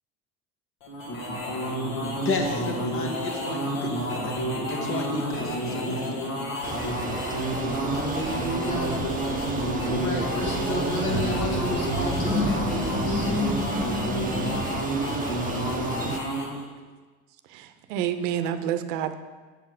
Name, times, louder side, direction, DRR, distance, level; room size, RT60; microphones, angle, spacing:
sound 1, 0.8-16.7, equal, 55° left, 2.0 m, -30 dB
voice 1, 2.2-4.4 4.7-6.1, left 2 dB, 30° left, 2 dB, 1.7 m, -32 dB
Bicycle, 6.6-16.2, right 5 dB, 20° right, 0.7 m, -34 dB
voice 2, 7.8-8.9 9.8-13.3, equal, 75° left, -2 dB, 1.9 m, -31 dB
sound 2, 8.2-14.6, left 1 dB, 15° left, 1.6 m, -31 dB
voice 3, 17.5-19.1, right 10 dB, 55° right, 10 dB, 0.8 m, -28 dB
7.4 x 7.3 x 4.9 m, 1.3 s
figure-of-eight pair, 65°, 43 cm